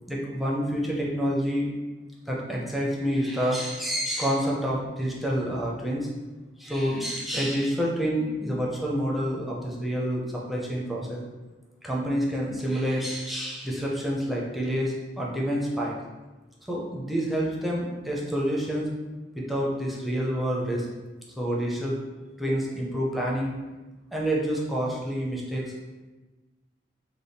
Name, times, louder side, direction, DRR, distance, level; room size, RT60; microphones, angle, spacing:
voice 1, 0.1-1.7 2.3-6.1 6.6-11.2 11.8-15.9 16.7-18.9 19.3-20.9 21.4-22.0 22.4-23.5 24.1-25.6, equal, ahead, -4 dB, 0.6 m, -28 dB
3.4 x 2.2 x 4.0 m, 1.2 s
head